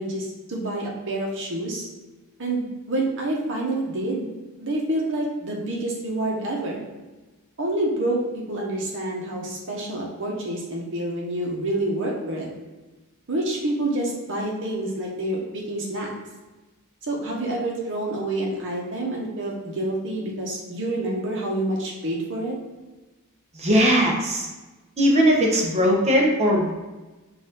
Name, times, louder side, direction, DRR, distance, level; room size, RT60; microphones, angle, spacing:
voice 1, 0.0-1.9 2.4-6.8 7.6-12.5 13.3-16.1 17.0-22.6, right 1 dB, 60° right, -2 dB, 1.0 m, -28 dB
voice 2, 23.5-24.5 25.0-26.7, equal, 30° right, -1 dB, 0.8 m, -19 dB
4.7 x 2.5 x 3.8 m, 1.2 s
head